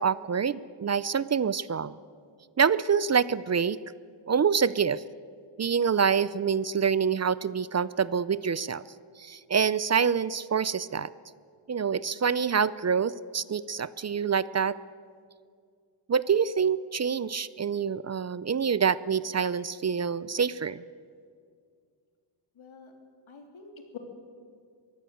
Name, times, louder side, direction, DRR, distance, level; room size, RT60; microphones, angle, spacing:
voice 1, 0.0-1.9 2.6-3.8 4.3-5.0 5.6-8.8 9.2-11.1 11.7-14.8 16.1-20.8, right 6 dB, 35° right, 18 dB, 0.5 m, -26 dB
voice 2, 22.6-22.9 23.3-24.0, left 6 dB, 70° left, 4 dB, 3.4 m, -46 dB
23.0 x 16.0 x 7.9 m, 2.2 s
cardioid pair, 90°, 50 cm